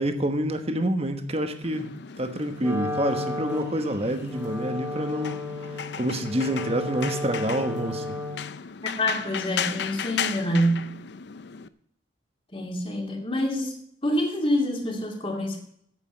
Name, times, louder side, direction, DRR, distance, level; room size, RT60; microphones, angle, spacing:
voice 1, 0.0-1.9 2.2-5.4 5.8-8.2, right 1 dB, 30° right, 1.1 m, -27 dB
sound 1, 1.6-11.7, left 7 dB, 55° left, 0.5 m, -36 dB
Wind instrument woodwind instrument, 2.6-8.6, left 1 dB, 10° right, 2.3 m, -34 dB
voice 2, 9.0-10.9 12.5-13.7 14.0-15.6, equal, 25° left, 2.3 m, -26 dB
9.2 x 8.2 x 8.7 m
head